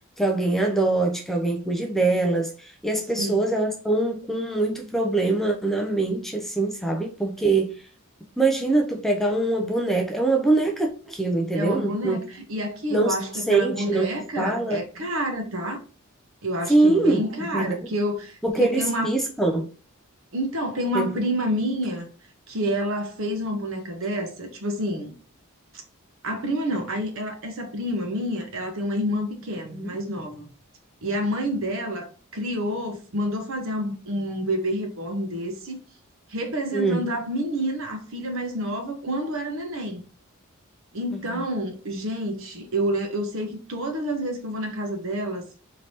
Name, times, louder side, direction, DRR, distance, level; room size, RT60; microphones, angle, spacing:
voice 1, 0.2-7.7 8.4-12.2 12.9-14.1 14.4-14.8 16.7-17.2 17.5-17.9 18.4-19.7 20.9-21.2 29.7-30.0 36.7-37.0 41.1-41.4, right 2 dB, ahead, 0.3 m, -23 dB
voice 2, 11.5-15.8 16.4-19.1 20.3-22.1 22.5-25.1 26.2-30.5 31.0-32.1 32.3-35.8 36.3-40.0 40.9-45.5, equal, 65° right, 0.8 m, -28 dB
3.2 x 2.8 x 2.7 m
head